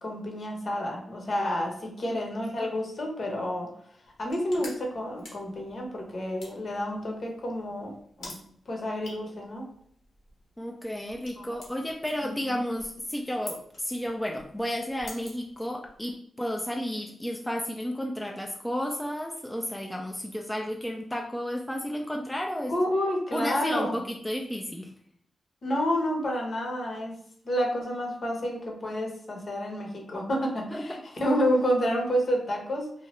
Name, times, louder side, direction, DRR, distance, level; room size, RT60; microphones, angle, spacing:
voice 1, 0.0-3.7 4.2-7.9 8.2-8.4 8.7-9.7 11.4-11.5 12.2-12.6 22.7-24.0 25.6-27.2 27.4-32.9, equal, 55° left, 0 dB, 0.9 m, -29 dB
sound 1, 4.0-16.1, left 2 dB, 80° left, 1.1 m, -50 dB
voice 2, 10.6-22.7 23.3-24.9 30.7-30.8, equal, 10° left, 1 dB, 0.4 m, -32 dB
2.8 x 2.3 x 3.1 m, 0.65 s
cardioid pair, 70°, 0 cm